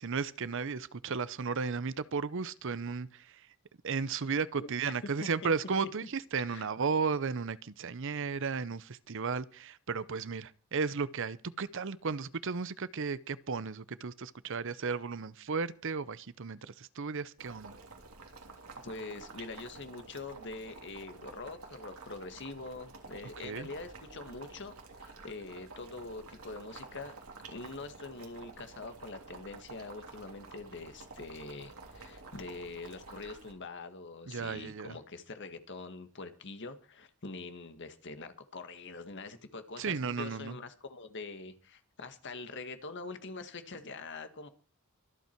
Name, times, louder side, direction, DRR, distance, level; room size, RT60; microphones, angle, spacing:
voice 1, 0.0-3.3 3.8-17.8 23.4-23.7 34.3-35.0 39.8-40.6, right 5 dB, 60° right, 0.7 m, -34 dB
Boiling, 17.4-33.5, right 3 dB, 90° right, 3.2 m, -50 dB
voice 2, 18.8-24.7 25.0-27.1 27.5-44.5, left 3 dB, 55° left, 1.7 m, -44 dB
24.5 x 8.4 x 4.6 m
head